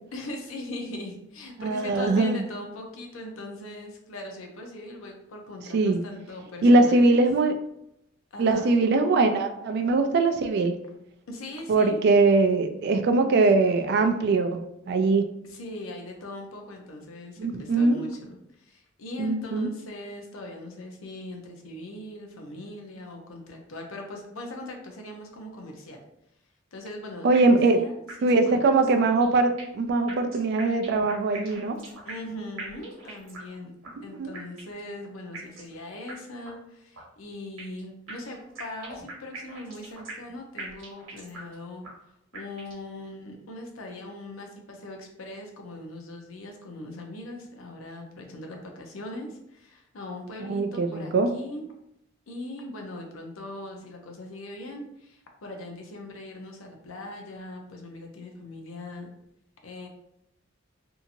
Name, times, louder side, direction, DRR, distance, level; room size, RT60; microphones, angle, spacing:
voice 1, 0.1-7.2 8.3-8.7 11.3-12.0 15.4-26.0 26.7-29.1 32.0-33.7 34.0-51.7 52.3-59.1 59.6-59.9, left 1 dB, 85° left, 2 dB, 0.6 m, -40 dB
voice 2, 1.6-2.4 5.7-6.0 6.6-7.6 8.4-10.8 11.7-15.3 17.4-18.0 19.2-19.7 27.2-27.8 28.2-31.8 34.2-34.3 50.5-51.3, right 3 dB, 55° right, 7 dB, 0.3 m, -21 dB
sound 1, 27.3-27.8 28.1-28.2 28.5-28.6 29.0-29.8 30.1-32.3 32.6-33.6 33.8-33.9 34.3-34.9 35.3-35.8 36.1-36.2 36.5-36.6 36.9-37.8 38.1-40.3 40.6-41.6 41.8-41.9 42.3-42.9, right 3 dB, 80° right, 1.0 m, -42 dB
2.8 x 2.6 x 2.5 m, 0.80 s
head